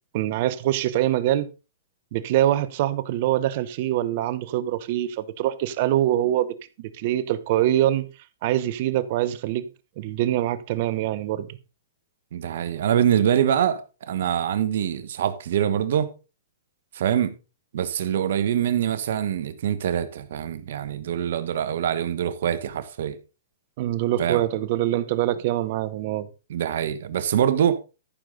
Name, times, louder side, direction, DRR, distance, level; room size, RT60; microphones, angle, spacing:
voice 1, 0.1-1.5 2.1-8.1 8.4-9.7 10.0-11.5 23.8-26.3, right 13 dB, 50° right, 0.9 m, -24 dB
voice 2, 12.3-16.1 16.9-17.3 17.7-23.2 24.2-24.4 26.5-27.8, right 9 dB, 65° right, 1.3 m, -24 dB
13.5 x 6.7 x 3.9 m
hypercardioid pair, 135°, 0 cm